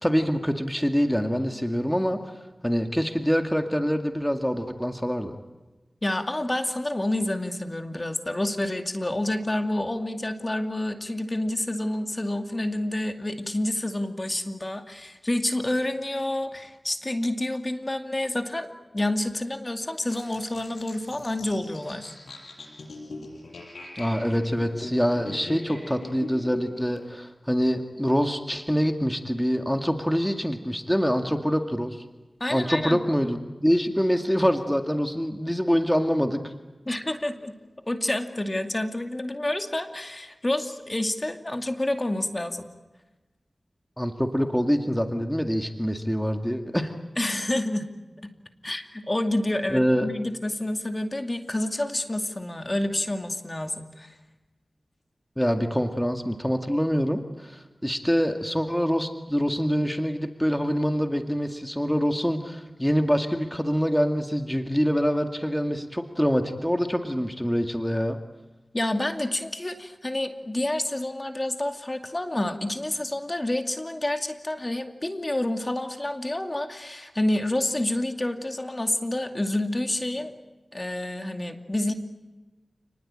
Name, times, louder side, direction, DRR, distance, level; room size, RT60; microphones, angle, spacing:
voice 1, 0.0-2.2 2.6-5.4 24.0-32.0 32.5-36.4 44.0-46.9 49.7-50.1 55.4-68.2, equal, 5° left, 5 dB, 2.2 m, -25 dB
voice 2, 6.0-18.7 18.9-22.1 32.4-33.0 36.9-37.5 37.9-42.7 47.2-47.9 48.2-48.3 48.6-54.1 68.7-80.3 80.7-81.9, left 1 dB, 30° left, 5 dB, 2.4 m, -28 dB
sound 1, 20.1-27.1, left 2 dB, 90° left, 6.3 m, -40 dB
29.0 x 20.0 x 8.8 m, 1.1 s
wide cardioid pair, 50°, 0 cm